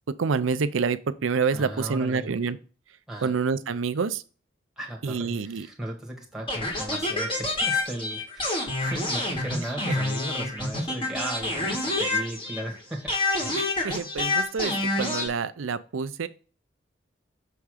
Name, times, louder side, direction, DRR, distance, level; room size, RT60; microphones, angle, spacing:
voice 1, 0.2-2.6 3.2-4.2 5.0-5.7 13.6-16.3, right 5 dB, 80° right, 13 dB, 0.5 m, -27 dB
voice 2, 1.5-2.4 3.1-3.3 4.8-13.2, right 1 dB, 5° right, -2 dB, 1.7 m, -36 dB
sound 1, 6.5-12.7 13.1-15.3, left 2 dB, 25° left, 2.1 m, -27 dB
6.9 x 3.6 x 4.9 m, 0.36 s
head